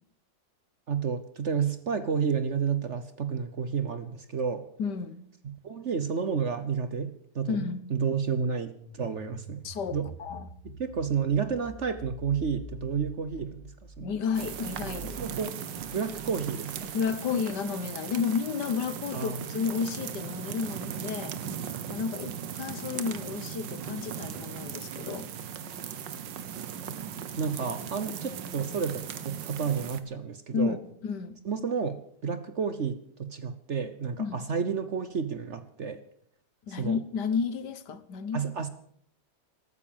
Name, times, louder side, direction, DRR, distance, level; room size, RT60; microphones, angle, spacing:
voice 1, 0.9-4.7 5.4-9.6 9.9-10.1 10.6-14.1 15.2-15.6 15.9-16.9 19.1-19.3 27.4-30.8 31.4-36.0 36.7-37.0 38.3-38.7, right 6 dB, 50° right, 1.1 m, -31 dB
voice 2, 4.8-5.2 7.5-7.8 9.6-10.5 14.0-15.2 16.9-21.4 21.9-25.3 30.5-31.4 34.2-34.4 36.7-38.5, left 6 dB, 70° left, 1.7 m, -32 dB
sound 1, 8.6-17.3, equal, 15° left, 3.3 m, -47 dB
sound 2, 14.3-30.0, right 8 dB, 85° right, 1.8 m, -38 dB
14.0 x 13.5 x 7.3 m
omnidirectional pair, 1.9 m